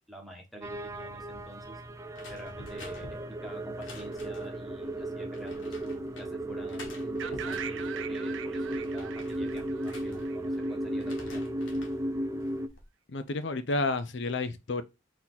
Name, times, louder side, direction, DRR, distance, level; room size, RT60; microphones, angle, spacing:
voice 1, 0.1-1.8 2.3-11.4, right 1 dB, ahead, 1.4 m, -48 dB
sound 1, 0.6-12.7, right 1 dB, 15° right, 0.3 m, -35 dB
sound 2, 2.1-4.6 5.3-6.3 6.7-7.9 8.4-10.6 10.9-12.0 12.5-12.9, left 2 dB, 90° left, 1.2 m, -49 dB
sound 3, 7.2-11.1, right 8 dB, 85° right, 0.4 m, -42 dB
voice 2, 13.1-14.8, left 3 dB, 65° left, 0.6 m, -30 dB
4.3 x 2.9 x 3.8 m
head